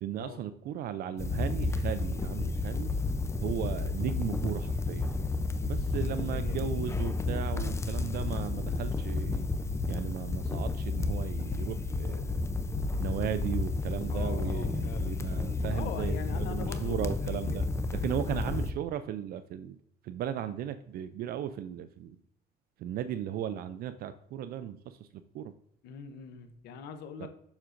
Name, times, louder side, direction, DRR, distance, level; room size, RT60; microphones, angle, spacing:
voice 1, 0.0-2.9 3.4-5.2 5.6-9.5 9.9-12.5 13.0-17.6 18.0-19.8 20.0-22.1 22.8-25.0 25.3-25.5 27.2-27.3, right 10 dB, 65° right, 11 dB, 0.4 m, -36 dB
sound 1, 1.2-18.7, left 3 dB, 15° left, 0.5 m, -31 dB
voice 2, 6.3-6.7 14.1-15.2 15.7-18.2 25.8-27.3, left 7 dB, 85° left, 8 dB, 0.8 m, -43 dB
7.2 x 6.2 x 2.5 m, 0.73 s
cardioid pair, 110°, 17 cm